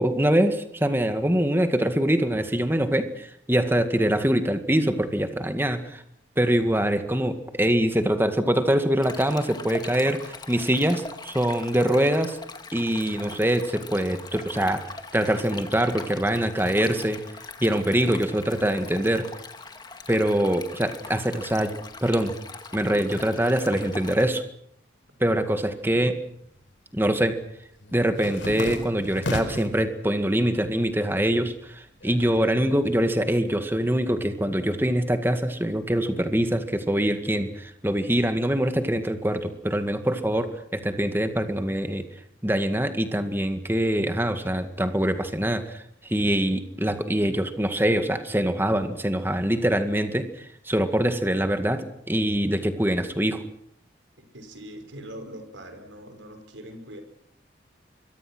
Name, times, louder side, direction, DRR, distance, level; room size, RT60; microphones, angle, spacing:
voice 1, 0.0-6.0 6.4-12.4 12.7-14.8 15.1-17.2 17.6-19.3 20.1-21.7 22.0-22.3 22.7-24.4 25.2-26.2 26.9-27.4 27.9-42.0 42.4-53.4, right 1 dB, 10° right, 8 dB, 2.0 m, -24 dB
Stream, 9.0-24.2, left 4 dB, 20° left, 2.1 m, -41 dB
sound 1, 26.2-26.7 27.0-29.8 30.3-30.9 31.2-32.9, left 1 dB, 85° left, 4.5 m, -35 dB
voice 2, 54.3-57.0, equal, 85° right, 7 dB, 5.3 m, -42 dB
25.5 x 23.0 x 6.2 m, 0.70 s
head